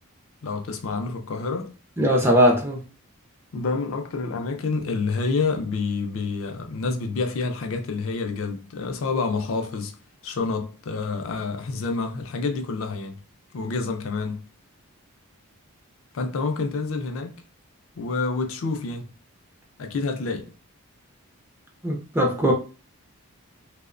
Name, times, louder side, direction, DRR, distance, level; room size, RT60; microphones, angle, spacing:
voice 1, 0.4-1.7 3.5-9.9 10.2-13.2 13.5-14.4 16.1-17.4 18.0-19.1 19.8-20.5, left 4 dB, 65° left, 0.4 m, -28 dB
voice 2, 2.0-2.8 21.8-22.5, equal, 10° right, 0.3 m, -20 dB
2.7 x 2.0 x 2.4 m
head